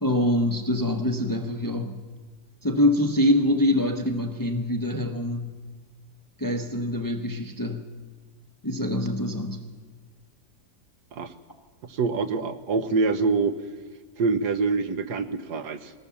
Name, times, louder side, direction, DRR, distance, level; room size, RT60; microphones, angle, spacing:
voice 1, 0.0-2.0 2.6-5.5 6.4-7.8 8.6-9.6, left 1 dB, 15° left, 5 dB, 0.8 m, -24 dB
voice 2, 11.8-13.6 14.2-15.9, right 4 dB, 75° right, 9 dB, 1.6 m, -25 dB
21.5 x 17.0 x 7.1 m, 1.5 s
omnidirectional pair, 1.8 m